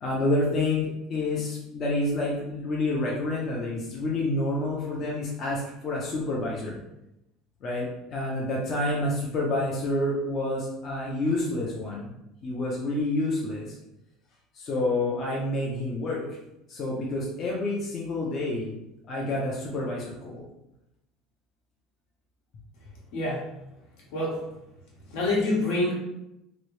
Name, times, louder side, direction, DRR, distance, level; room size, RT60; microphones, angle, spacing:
voice 1, 0.0-6.8 7.6-12.1 12.4-13.8 14.5-16.2 16.7-18.7 19.1-20.4, left 2 dB, 35° left, -4 dB, 0.6 m, -28 dB
voice 2, 23.1-23.5 24.1-24.4 25.1-25.9, left 2 dB, 70° left, -3 dB, 1.1 m, -26 dB
3.0 x 2.6 x 3.1 m, 0.87 s
cardioid pair, 160°, 0 cm